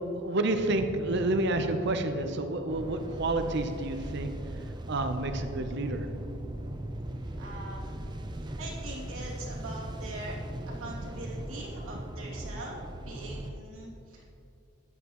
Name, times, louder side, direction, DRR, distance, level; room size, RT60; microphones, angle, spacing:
voice 1, 0.2-4.3 4.9-6.1, right 2 dB, 55° right, 7 dB, 0.7 m, -29 dB
sound 1, 2.7-13.5, right 1 dB, 20° right, 0.5 m, -38 dB
voice 2, 7.4-8.0 8.4-10.4 10.8-12.7 13.0-14.3, right 2 dB, 90° right, -4 dB, 2.7 m, -42 dB
13.5 x 10.5 x 3.1 m, 2.7 s
head